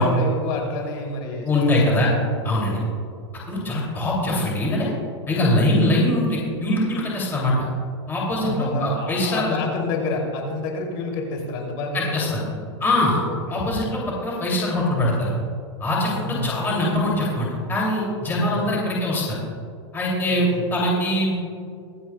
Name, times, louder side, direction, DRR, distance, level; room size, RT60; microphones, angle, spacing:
voice 1, 0.0-1.7 2.3-3.0 8.4-12.6 13.5-13.8 16.2-16.7 18.3-18.7 20.3-20.7, left 2 dB, 45° left, 0 dB, 2.8 m, -29 dB
voice 2, 1.4-2.1 2.4-2.8 3.5-4.9 5.3-7.7 8.1-9.6 11.9-12.4 12.8-13.2 13.5-15.3 15.8-19.4 19.9-21.4, left 1 dB, 15° left, -4 dB, 2.6 m, -22 dB
24.5 x 8.6 x 2.3 m, 2.3 s
supercardioid pair, 155°, 15 cm